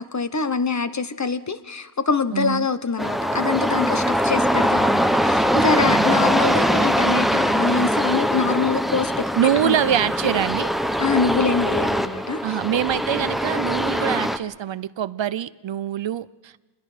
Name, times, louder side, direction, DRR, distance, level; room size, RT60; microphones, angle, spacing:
voice 1, 0.0-9.8 11.0-12.6, left 5 dB, 35° left, 1.0 m, -24 dB
voice 2, 2.3-2.7 5.8-6.3 9.3-10.7 12.4-16.6, right 10 dB, 65° right, 0.6 m, -24 dB
sound 1, 3.0-14.4, equal, ahead, 0.8 m, -22 dB
27.0 x 21.5 x 5.0 m
wide cardioid pair, 100°, 48 cm